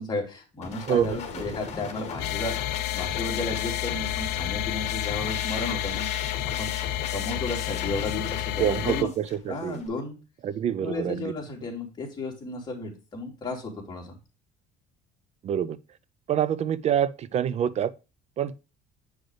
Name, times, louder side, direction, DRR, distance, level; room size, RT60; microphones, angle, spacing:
voice 1, 0.0-2.6 2.9-6.1 6.6-6.7 7.1-9.1 9.5-10.2 10.8-14.2, left 3 dB, 25° left, 2.9 m, -33 dB
sound 1, 0.6-9.9, left 5 dB, 40° left, 2.2 m, -38 dB
voice 2, 0.9-1.4 8.6-9.8 10.4-11.3 15.4-15.8 16.3-17.9 18.4-18.6, right 9 dB, 40° right, 0.5 m, -26 dB
sound 2, 2.2-9.0, left 16 dB, 75° left, 0.7 m, -30 dB
8.0 x 6.3 x 3.2 m
cardioid pair, 140°, 17 cm